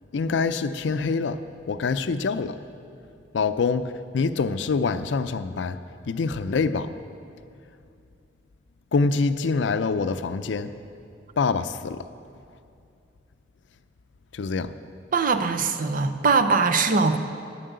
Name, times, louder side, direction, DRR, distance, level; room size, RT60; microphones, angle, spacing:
voice 1, 0.1-1.4 1.7-2.6 3.3-3.8 4.1-5.8 6.1-6.9 8.9-10.7 11.4-12.0 14.3-14.7, left 4 dB, 85° left, 12 dB, 0.4 m, -25 dB
voice 2, 15.1-17.2, right 4 dB, 50° right, 8 dB, 0.6 m, -21 dB
9.3 x 7.5 x 8.0 m, 2.5 s
head